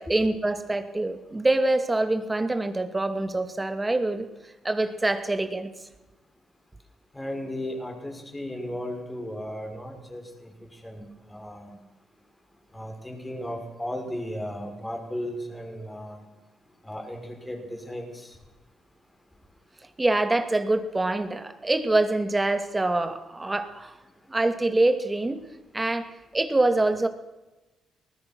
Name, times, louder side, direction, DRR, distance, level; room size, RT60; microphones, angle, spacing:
voice 1, 0.0-4.3 4.6-5.7 20.0-23.9 24.3-25.4 25.7-27.1, right 2 dB, 20° right, 8 dB, 2.5 m, -25 dB
voice 2, 7.1-11.8 12.7-16.2 16.8-18.3, equal, 15° left, 2 dB, 6.5 m, -35 dB
23.5 x 19.5 x 6.3 m, 1.1 s
cardioid pair, 85°, 0 cm